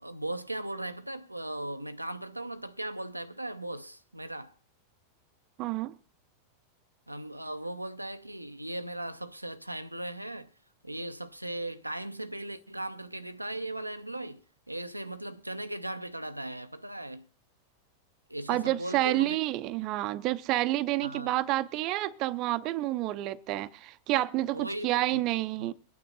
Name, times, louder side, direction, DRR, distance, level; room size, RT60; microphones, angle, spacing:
voice 1, 0.0-4.5 7.1-10.5 10.8-17.3 18.3-19.4 21.0-21.3 24.5-25.3 25.6-25.7, right 1 dB, 85° right, 0.6 m, -38 dB
voice 2, 5.6-5.9 18.5-25.7, right 16 dB, 40° right, 0.6 m, -29 dB
23.0 x 9.1 x 3.9 m
figure-of-eight pair, 90°, 0 cm